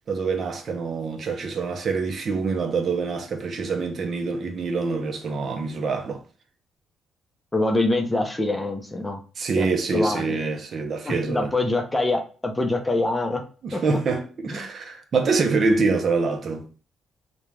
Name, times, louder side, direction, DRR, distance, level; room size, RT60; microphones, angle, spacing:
voice 1, 0.1-6.2 9.4-11.5 13.6-16.6, right 4 dB, 50° right, 0.5 m, -25 dB
voice 2, 7.5-9.2 9.6-10.4 11.0-13.4 13.7-13.8 14.5-14.7, left 2 dB, 15° left, 0.5 m, -25 dB
2.3 x 2.1 x 3.1 m
cardioid pair, 90°, 0 cm